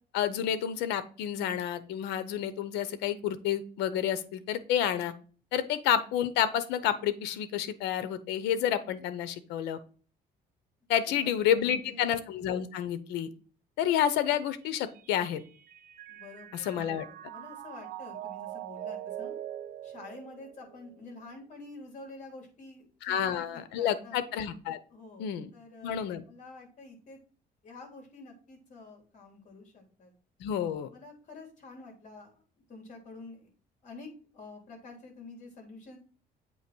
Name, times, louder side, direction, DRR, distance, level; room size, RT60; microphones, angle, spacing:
voice 1, 0.1-5.1 5.5-9.8 10.9-13.3 13.8-15.4 16.5-17.1 23.0-24.8 25.2-25.5 25.8-26.2 30.4-30.9, left 9 dB, 90° left, 14 dB, 0.8 m, -29 dB
voice 2, 11.1-12.2 16.1-19.3 19.8-24.2 24.9-25.9 26.3-27.2 27.6-30.1 30.9-32.4 32.7-33.5 33.8-36.0, left 3 dB, 45° left, 1 dB, 3.4 m, -48 dB
Mallet percussion, 14.7-21.1, right 12 dB, 60° right, 0.9 m, -43 dB
8.0 x 3.1 x 6.1 m, 0.40 s
cardioid pair, 110°, 17 cm